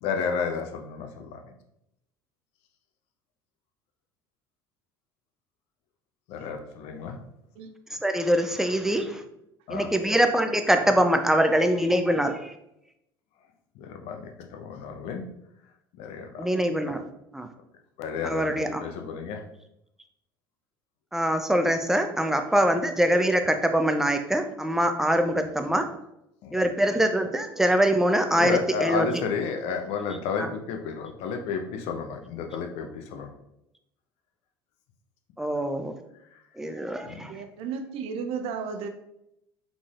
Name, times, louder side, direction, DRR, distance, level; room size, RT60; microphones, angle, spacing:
voice 1, 0.0-1.5 6.3-7.2 9.7-9.9 13.8-15.2 16.0-16.5 16.9-17.0 18.0-18.5 18.8-19.4 26.4-26.6 28.4-33.3 37.0-37.2, left 5 dB, 60° left, 4 dB, 0.7 m, -32 dB
voice 2, 8.0-9.2 9.7-12.5 16.4-17.0 17.3-17.5 18.2-18.8 21.1-25.8 26.5-29.2 30.4-30.5 35.4-35.9 36.6-37.3, right 1 dB, 5° right, 7 dB, 0.5 m, -23 dB
voice 3, 37.3-38.9, right 6 dB, 55° right, 7 dB, 0.6 m, -33 dB
4.6 x 4.1 x 2.4 m, 0.82 s
figure-of-eight pair, 65°, 12 cm